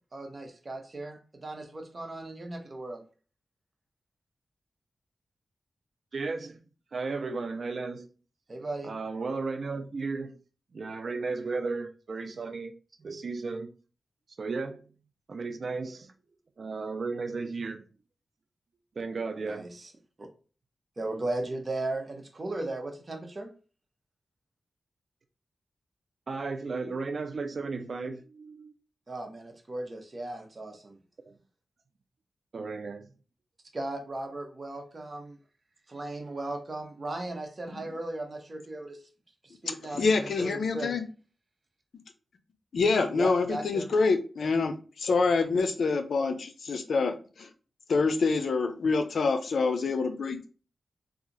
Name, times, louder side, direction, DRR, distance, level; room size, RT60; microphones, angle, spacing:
voice 1, 0.1-3.0 8.5-8.9 19.4-19.9 20.2-20.3 21.0-23.5 29.1-31.0 33.7-35.4 35.9-39.0 39.4-41.0 43.1-43.9, right 2 dB, 40° right, 0.9 m, -37 dB
voice 2, 6.1-6.6 6.9-8.1 8.8-10.4 10.7-12.7 13.0-13.7 14.4-14.9 15.3-16.1 16.6-17.8 19.0-19.7 26.3-28.7 31.3-31.4 32.5-33.1, right 4 dB, 60° right, 0.5 m, -34 dB
voice 3, 39.6-41.0 42.7-47.5 47.9-50.5, left 4 dB, 80° left, 0.5 m, -26 dB
2.8 x 2.4 x 3.9 m
wide cardioid pair, 80°, 0 cm